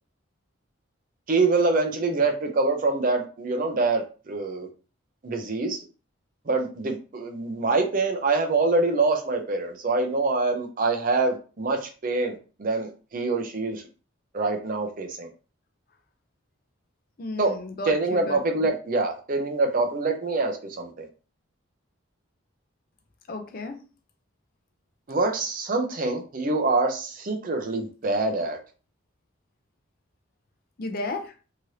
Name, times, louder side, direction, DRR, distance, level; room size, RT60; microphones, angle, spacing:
voice 1, 1.3-4.7 5.2-5.8 6.5-13.8 14.3-15.3 17.4-17.5 17.9-21.1 25.1-28.6, right 3 dB, 40° right, 4 dB, 0.5 m, -25 dB
voice 2, 17.2-18.7 23.3-23.8 30.8-31.3, left 2 dB, 45° left, 5 dB, 0.5 m, -33 dB
2.8 x 2.5 x 3.1 m, 0.36 s
head